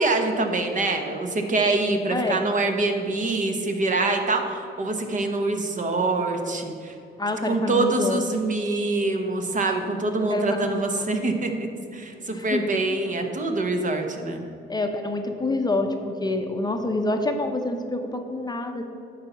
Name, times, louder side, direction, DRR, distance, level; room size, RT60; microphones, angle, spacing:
voice 1, 0.0-6.9 7.4-11.5 11.9-14.4, right 2 dB, 40° right, 4 dB, 1.1 m, -25 dB
voice 2, 2.1-2.4 7.2-8.2 10.3-10.5 11.0-11.1 12.3-12.7 14.7-15.9 16.2-18.9, left 2 dB, 20° left, 4 dB, 0.7 m, -27 dB
9.6 x 4.1 x 7.0 m, 2.7 s
cardioid pair, 90°, 20 cm